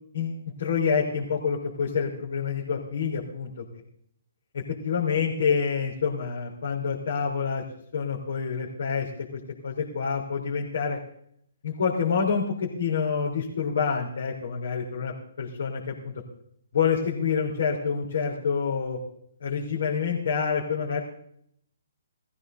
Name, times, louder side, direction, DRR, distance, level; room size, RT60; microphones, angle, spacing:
voice 1, 0.1-3.6 4.5-7.6 7.9-11.0 11.6-16.1 16.7-19.0 19.4-21.0, left 6 dB, 60° left, -3 dB, 3.4 m, -27 dB
18.0 x 15.0 x 3.9 m, 0.69 s
figure-of-eight pair, 135°, 0 cm